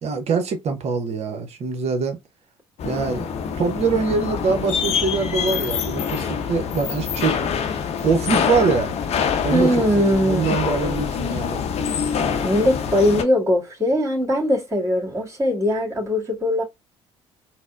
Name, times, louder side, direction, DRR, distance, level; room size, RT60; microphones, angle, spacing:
voice 1, 0.0-2.2 2.8-3.3 3.6-7.4 8.0-8.9 9.4-11.6, right 4 dB, 50° right, 0.7 m, -23 dB
sound 1, 2.8-13.2, left 7 dB, 50° left, 0.6 m, -25 dB
voice 2, 9.5-10.6 12.4-16.6, left 1 dB, 20° right, 1.9 m, -20 dB
4.0 x 2.0 x 2.3 m
hypercardioid pair, 50°, 14 cm